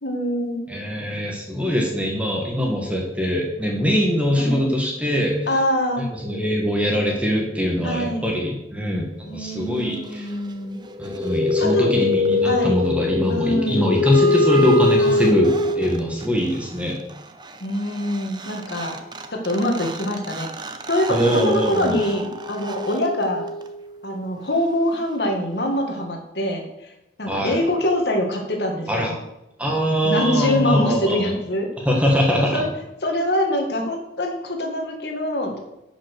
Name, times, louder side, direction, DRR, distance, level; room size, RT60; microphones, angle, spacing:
voice 1, 0.0-0.6 4.4-4.7 5.5-6.0 7.8-8.3 9.3-10.8 11.6-11.9 12.4-12.8 13.3-13.9 15.0-15.4 17.6-19.0 19.3-20.5 20.9-23.4 24.0-26.9 27.2-29.2 30.0-31.7 32.3-32.7 33.0-35.5, left 1 dB, 70° left, 2 dB, 1.9 m, -24 dB
voice 2, 0.7-5.4 6.2-10.3 11.0-15.5 15.8-17.0 21.1-22.0 27.3-27.6 28.9-29.1 29.6-31.2 31.9-32.6, equal, 10° right, -1 dB, 1.7 m, -22 dB
sound 1, 10.9-16.3 18.1-18.2 18.4-23.9, left 2 dB, 25° right, 0.8 m, -23 dB
11.5 x 5.8 x 6.6 m, 0.91 s
head